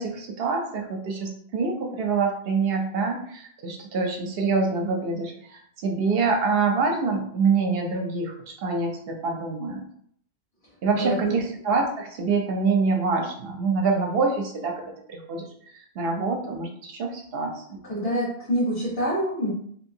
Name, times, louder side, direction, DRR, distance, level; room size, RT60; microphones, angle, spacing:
voice 1, 0.0-8.3 8.6-9.8 10.8-15.5 15.7-17.8, right 4 dB, 65° right, 2 dB, 0.8 m, -26 dB
voice 2, 11.0-11.3 17.9-19.5, equal, 70° left, -8 dB, 1.4 m, -26 dB
2.8 x 2.7 x 2.7 m, 0.66 s
omnidirectional pair, 1.1 m